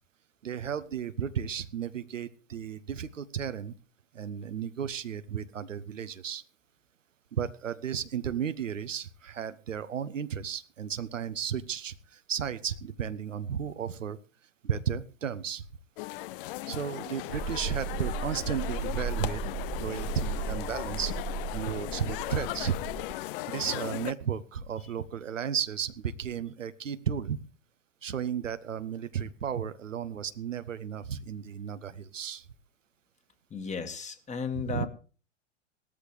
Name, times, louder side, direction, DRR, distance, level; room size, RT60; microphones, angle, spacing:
voice 1, 0.4-3.7 4.1-6.4 7.3-14.2 14.6-15.6 16.7-19.5 19.8-22.8 23.5-27.4 28.0-32.4 34.7-34.9, right 8 dB, 80° right, 12 dB, 1.0 m, -34 dB
sound 1, 16.0-24.1, left 17 dB, 45° left, 0.6 m, -37 dB
sound 2, 17.3-23.2, right 5 dB, 25° right, 1.8 m, -36 dB
voice 2, 33.5-34.9, left 6 dB, 20° left, 8 dB, 1.9 m, -34 dB
17.5 x 13.5 x 3.3 m, 0.37 s
figure-of-eight pair, 90°, 38 cm